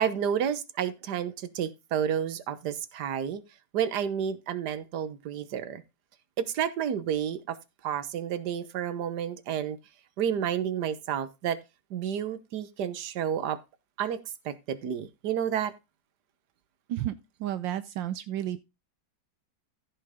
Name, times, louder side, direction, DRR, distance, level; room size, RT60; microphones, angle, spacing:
voice 1, 0.0-3.4 3.7-5.8 6.4-7.6 7.8-9.8 10.2-11.6 11.9-13.6 14.0-15.7, right 9 dB, 65° right, 1.6 m, -30 dB
voice 2, 17.4-18.6, right 12 dB, 80° right, 1.4 m, -31 dB
15.0 x 5.7 x 3.6 m
omnidirectional pair, 2.0 m